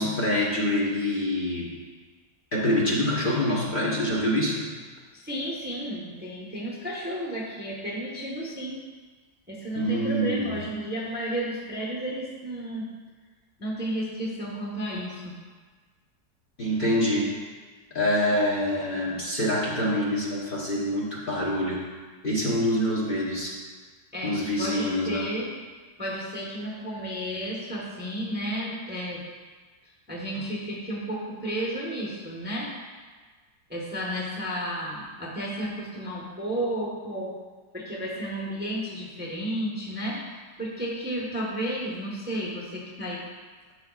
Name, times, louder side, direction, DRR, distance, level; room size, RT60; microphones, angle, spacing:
voice 1, 0.0-1.7 2.5-4.7 9.7-10.5 16.6-17.3 17.9-21.8 22.2-23.6 24.2-25.2, left 1 dB, 35° left, -6 dB, 1.2 m, -25 dB
voice 2, 5.1-8.8 9.5-12.9 13.6-15.3 18.9-19.2 24.1-25.5 26.0-29.2 29.8-32.7 33.7-37.4 37.7-40.2 40.6-43.2, equal, 5° right, -4 dB, 0.9 m, -32 dB
12.0 x 6.5 x 2.4 m, 1.4 s
omnidirectional pair, 1.7 m